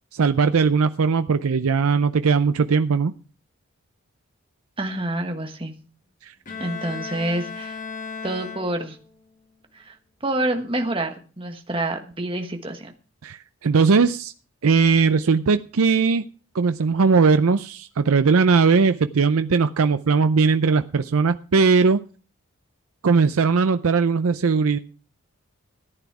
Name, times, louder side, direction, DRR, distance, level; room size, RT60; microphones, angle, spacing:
voice 1, 0.1-3.1 13.2-14.3 14.6-16.2 16.5-22.0 23.0-24.8, right 5 dB, 80° right, 10 dB, 0.5 m, -19 dB
voice 2, 4.8-5.7 6.6-7.8 8.2-9.0 9.7-9.9 10.2-12.9, right 1 dB, 25° right, 5 dB, 1.3 m, -27 dB
Bowed string instrument, 6.5-9.2, left 5 dB, 35° left, 2.0 m, -35 dB
14.5 x 9.2 x 4.7 m, 0.38 s
head